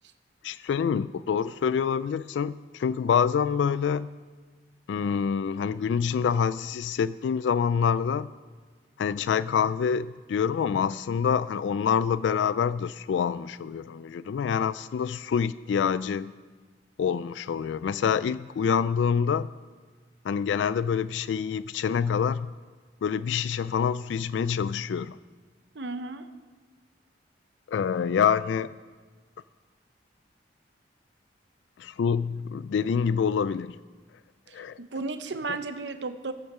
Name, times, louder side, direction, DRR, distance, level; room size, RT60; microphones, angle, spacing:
voice 1, 0.4-4.1 4.9-8.3 9.0-16.3 17.0-19.5 20.2-22.5 23.0-25.2 27.7-28.7 31.8-33.8 34.5-34.8, left 7 dB, 75° left, 16 dB, 0.3 m, -26 dB
voice 2, 25.7-26.3 34.5-36.3, right 3 dB, 70° right, 9 dB, 0.8 m, -34 dB
16.5 x 8.7 x 5.5 m, 1.4 s
head